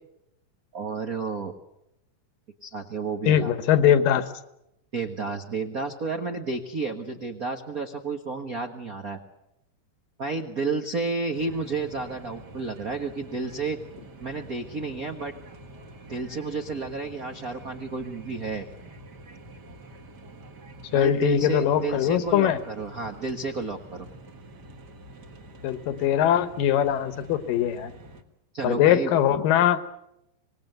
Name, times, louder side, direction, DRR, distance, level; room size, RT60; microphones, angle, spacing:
voice 1, 0.7-1.5 2.6-3.5 4.9-9.2 10.2-13.8 14.2-15.3 16.1-18.7 20.9-24.1 28.5-29.1, right 4 dB, 65° right, 5 dB, 0.8 m, -31 dB
voice 2, 3.3-4.3 20.9-22.6 25.6-27.9 28.6-29.8, left 10 dB, 75° left, 11 dB, 2.8 m, -21 dB
sound 1, 11.3-28.2, right 1 dB, 40° right, 1.7 m, -47 dB
25.5 x 20.0 x 7.9 m, 0.85 s
omnidirectional pair, 4.0 m